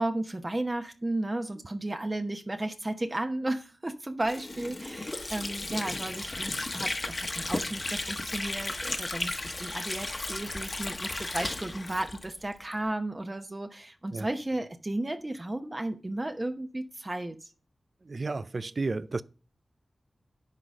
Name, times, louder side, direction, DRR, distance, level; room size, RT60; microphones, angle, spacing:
voice 1, 0.0-17.5, right 1 dB, 30° right, 1.0 m, -34 dB
Water / Sink (filling or washing), 4.2-12.8, left 2 dB, 40° left, 1.2 m, -34 dB
voice 2, 18.1-19.2, right 3 dB, 50° right, 0.5 m, -32 dB
10.5 x 4.0 x 6.5 m
wide cardioid pair, 65°, 0 cm